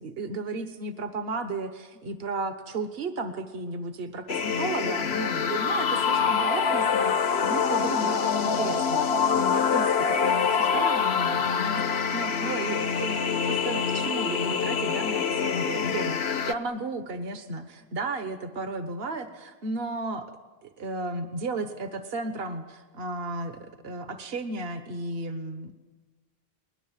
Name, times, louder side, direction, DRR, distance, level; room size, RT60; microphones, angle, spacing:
voice 1, 0.0-11.8 12.1-13.1 13.4-20.3 20.6-25.7, right 2 dB, 70° right, 9 dB, 1.5 m, -34 dB
sound 1, 4.3-16.5, left 6 dB, 85° left, 1.3 m, -25 dB
30.0 x 21.0 x 7.4 m, 1.3 s
omnidirectional pair, 1.0 m